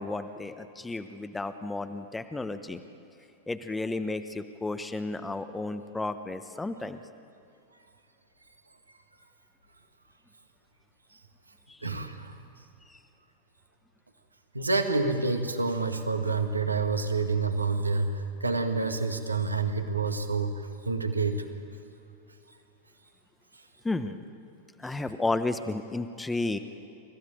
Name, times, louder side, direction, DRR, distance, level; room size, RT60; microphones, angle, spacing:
voice 1, 0.0-2.8 3.5-7.0 11.7-11.8 12.9-13.0 23.8-24.2 24.8-26.6, left 2 dB, 10° left, 10 dB, 1.0 m, -32 dB
voice 2, 11.8-12.3 14.5-21.4, right 3 dB, 80° right, 6 dB, 1.9 m, -28 dB
28.5 x 15.5 x 9.1 m, 2.8 s
figure-of-eight pair, 90°, 0 cm